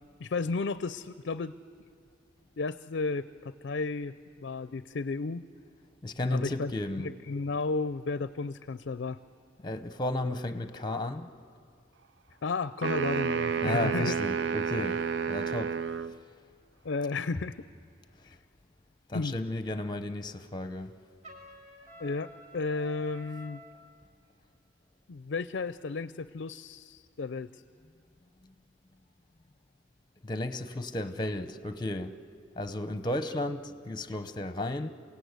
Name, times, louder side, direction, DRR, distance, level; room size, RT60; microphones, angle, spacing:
voice 1, 0.2-1.5 2.6-5.4 6.3-6.7 7.0-9.2 12.4-14.1 16.8-17.5 18.3-18.4 19.1-19.3 22.0-23.6 25.1-27.6, left 4 dB, 60° left, 14 dB, 0.5 m, -33 dB
voice 2, 6.0-7.1 9.6-11.3 13.6-15.0 15.3-15.8 18.2-18.4 19.1-20.9 28.4-28.5 30.2-32.2 32.6-34.9, left 1 dB, 25° left, 10 dB, 0.8 m, -33 dB
sound 1, 12.8-16.2, right 6 dB, 65° right, 0.5 m, -30 dB
Trumpet, 21.2-23.8, equal, 35° right, 2.0 m, -50 dB
28.5 x 17.5 x 8.1 m, 2.3 s
head